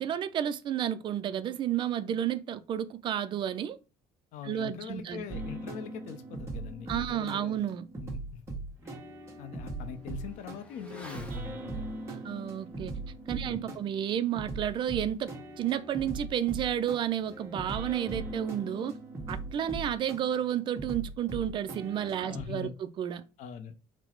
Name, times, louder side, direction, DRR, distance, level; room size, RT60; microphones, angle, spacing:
voice 1, 0.0-3.8 4.4-5.2 6.9-7.8 12.1-13.0 13.3-18.9 19.3-23.2, right 10 dB, 35° right, 0.3 m, -31 dB
voice 2, 4.3-7.6 8.0-8.6 8.9-9.0 9.4-11.8 13.3-13.8 22.2-22.8 23.4-23.9, left 7 dB, 70° left, 0.5 m, -42 dB
sound 1, 5.3-22.4, right 2 dB, 20° right, 1.1 m, -40 dB
Motorcycle / Accelerating revving vroom, 7.9-8.0 8.4-18.4 18.6-18.7, left 1 dB, 10° left, 0.7 m, -56 dB
4.0 x 2.0 x 4.3 m
cardioid pair, 150°, 13 cm